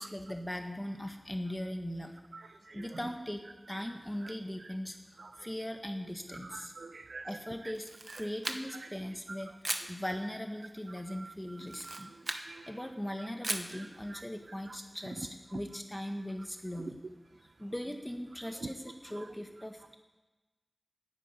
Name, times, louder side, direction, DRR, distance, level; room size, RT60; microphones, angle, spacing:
voice 1, 0.0-2.2 2.7-3.4 3.7-6.7 7.2-9.5 9.9-12.1 12.7-17.0 17.4-20.0, equal, 15° left, 4 dB, 1.6 m, -39 dB
voice 2, 6.5-7.3 11.2-11.3 11.9-12.7, right 3 dB, 85° right, 11 dB, 0.6 m, -47 dB
Camera, 7.7-8.9 9.6-9.9 11.6-12.5 13.4-13.8, right 1 dB, 40° right, 1.1 m, -37 dB
10.0 x 9.1 x 8.2 m, 1.2 s
wide cardioid pair, 55°, 0 cm